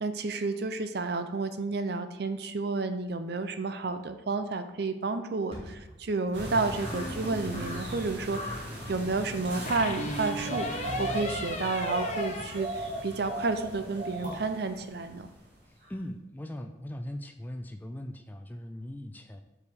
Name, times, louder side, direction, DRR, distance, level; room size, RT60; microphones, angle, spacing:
voice 1, 0.0-8.6 8.9-15.3, right 3 dB, 60° right, 9 dB, 0.5 m, -31 dB
sound 1, 5.2-17.3 17.7-17.8, equal, 30° right, 1.6 m, -53 dB
sound 2, 6.3-15.6 15.8-15.9, equal, 75° right, 1.8 m, -37 dB
sound 3, 6.9-7.8 9.7-13.4, left 1 dB, 40° left, 0.8 m, -37 dB
voice 2, 15.7-19.4, left 1 dB, 10° left, 6 dB, 0.4 m, -40 dB
4.9 x 4.8 x 5.4 m, 0.94 s
head